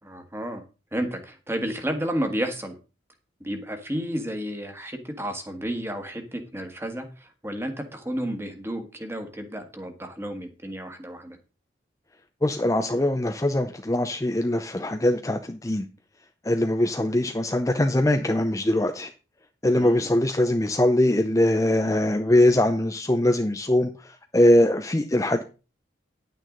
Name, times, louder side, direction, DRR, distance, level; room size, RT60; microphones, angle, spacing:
voice 1, 0.0-0.6 0.9-2.7 3.4-11.4 19.7-20.1, equal, 15° right, 6 dB, 1.6 m, -32 dB
voice 2, 12.4-15.8 16.4-19.1 19.6-25.4, left 1 dB, 15° left, 6 dB, 0.6 m, -22 dB
10.5 x 9.1 x 3.9 m, 0.33 s
head